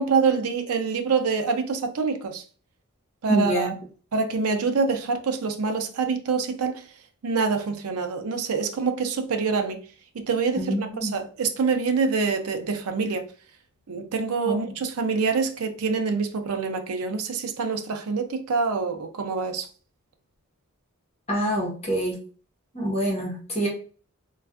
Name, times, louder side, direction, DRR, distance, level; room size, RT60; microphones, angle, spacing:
voice 1, 0.0-2.4 3.2-3.7 4.1-6.9 7.2-9.8 10.1-13.2 13.9-19.7, right 5 dB, 90° right, 0.5 m, -26 dB
voice 2, 3.3-3.7 10.6-11.1 14.4-14.6 21.3-22.2 22.7-23.7, right 1 dB, 30° left, 1.1 m, -26 dB
3.2 x 2.4 x 2.4 m
head